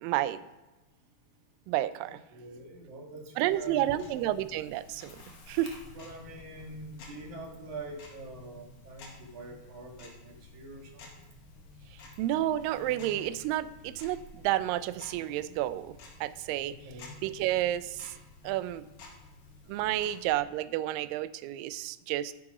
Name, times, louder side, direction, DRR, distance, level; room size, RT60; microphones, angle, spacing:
voice 1, 0.0-0.4 1.7-2.1 3.4-5.2 5.5-5.7 12.2-16.7 17.2-18.1 18.4-18.8 19.7-22.3, right 13 dB, 80° right, 14 dB, 2.2 m, -30 dB
voice 2, 2.0-4.1 5.8-11.3 16.7-17.1, right 2 dB, 55° right, 0 dB, 3.3 m, -45 dB
Tick-tock, 3.5-20.3, left 2 dB, 60° left, 3.0 m, -51 dB
14.5 x 8.4 x 4.9 m, 1.1 s
omnidirectional pair, 4.2 m